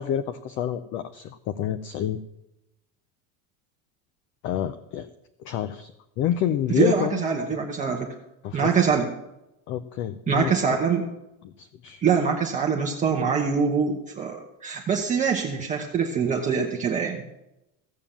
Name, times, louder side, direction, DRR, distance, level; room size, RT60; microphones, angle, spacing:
voice 1, 0.0-2.2 4.4-5.1 5.4-5.9 6.2-7.3 8.4-8.7 9.7-10.5 11.4-12.0, left 10 dB, 30° left, 12 dB, 0.4 m, -28 dB
voice 2, 6.7-8.1 8.5-9.1 10.3-11.1 12.0-17.2, right 6 dB, 20° right, 0 dB, 1.0 m, -24 dB
15.5 x 7.2 x 7.2 m, 0.89 s
cardioid pair, 175°, 41 cm